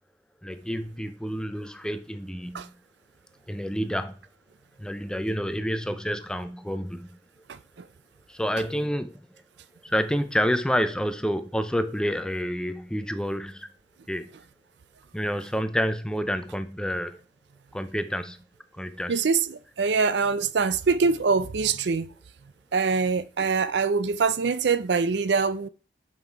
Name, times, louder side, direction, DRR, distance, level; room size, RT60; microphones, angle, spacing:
voice 1, 0.4-2.7 3.5-4.2 4.8-7.2 8.3-9.2 9.8-13.7 14.1-14.4 15.1-17.2 17.7-18.4 18.7-19.2, equal, 5° left, 0.5 m, -29 dB
voice 2, 19.1-22.1 22.7-25.7, right 5 dB, 70° right, 0.5 m, -24 dB
7.4 x 5.6 x 4.5 m
head